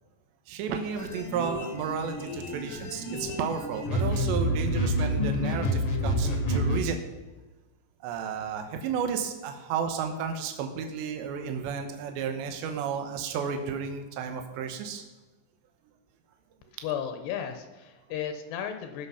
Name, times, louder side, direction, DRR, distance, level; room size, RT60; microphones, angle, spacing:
voice 1, 0.5-7.0 8.0-15.0, right 6 dB, 85° right, 5 dB, 3.3 m, -32 dB
sound 1, 0.9-6.8, equal, 55° left, 1.6 m, -29 dB
voice 2, 16.8-19.1, left 8 dB, 75° left, 7 dB, 2.9 m, -34 dB
18.5 x 6.5 x 5.7 m, 1.1 s
omnidirectional pair, 5.0 m